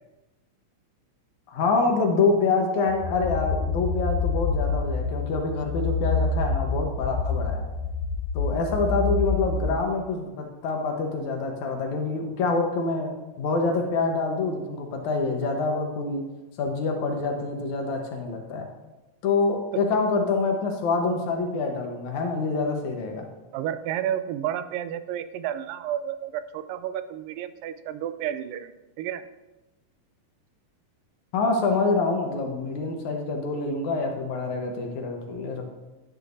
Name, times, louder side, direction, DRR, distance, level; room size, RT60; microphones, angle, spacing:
voice 1, 1.5-7.7 8.3-13.1 13.4-16.2 16.6-18.7 19.2-23.2 31.3-35.7, left 3 dB, 65° left, 2 dB, 2.4 m, -26 dB
sound 1, 2.9-9.7, left 4 dB, 90° left, 2.3 m, -27 dB
voice 2, 23.5-29.3, right 10 dB, 85° right, 12 dB, 2.3 m, -31 dB
12.0 x 9.7 x 2.7 m, 1.1 s
omnidirectional pair, 3.9 m